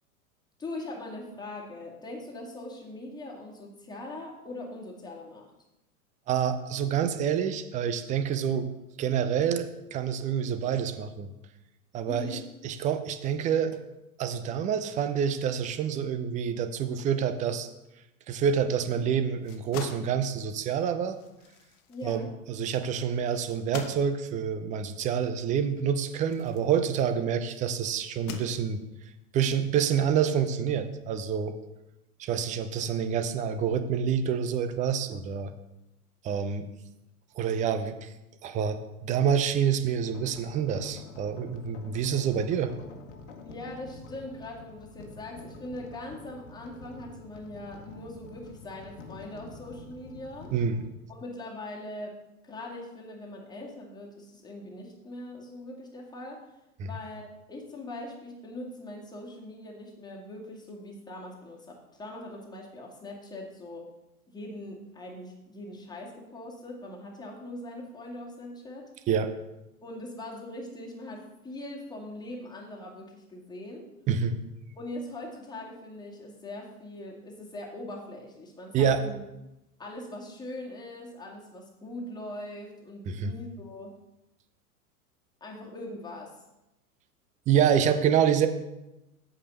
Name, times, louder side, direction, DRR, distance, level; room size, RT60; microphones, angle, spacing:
voice 1, 0.6-5.5 12.1-12.4 21.9-22.3 43.4-50.5 51.1-52.2 52.4-56.5 56.8-63.9 64.3-68.9 69.8-73.9 74.8-79.2 79.8-83.9 85.4-86.4, left 1 dB, 10° left, -2 dB, 2.0 m, -41 dB
voice 2, 6.3-8.7 9.0-11.3 11.9-13.8 14.2-17.7 18.3-21.2 22.0-28.8 29.3-31.5 32.2-35.5 36.2-36.7 37.4-38.1 38.4-42.7 50.5-50.8 56.8-56.9 69.1-69.4 74.1-74.4 78.7-79.0 83.1-83.3 87.5-88.5, right 8 dB, 15° right, 10 dB, 0.5 m, -27 dB
sound 1, 19.3-27.4 28.0-29.1, left 8 dB, 35° left, 1.1 m, -46 dB
sound 2, 40.0-50.9, left 4 dB, 55° left, 1.5 m, -47 dB
8.4 x 5.1 x 6.6 m, 0.94 s
figure-of-eight pair, 95°, 45 cm